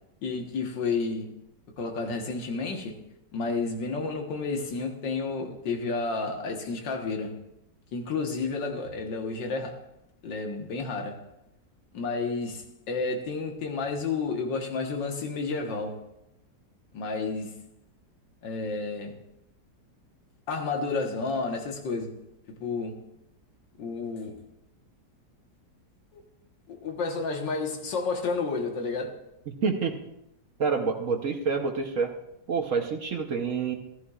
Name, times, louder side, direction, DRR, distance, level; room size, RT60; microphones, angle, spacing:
voice 1, 0.2-1.3 1.8-3.0 3.3-7.4 7.9-9.8 10.2-11.2 11.9-16.0 16.9-17.6 18.4-19.2 20.5-22.2 22.5-23.0 23.8-24.4 26.1-26.2 26.7-29.2, left 4 dB, 85° left, 2.0 m, -31 dB
voice 2, 29.5-30.0 30.6-32.1 32.5-33.7, right 5 dB, 55° right, 1.1 m, -27 dB
14.0 x 14.0 x 2.4 m
omnidirectional pair, 1.9 m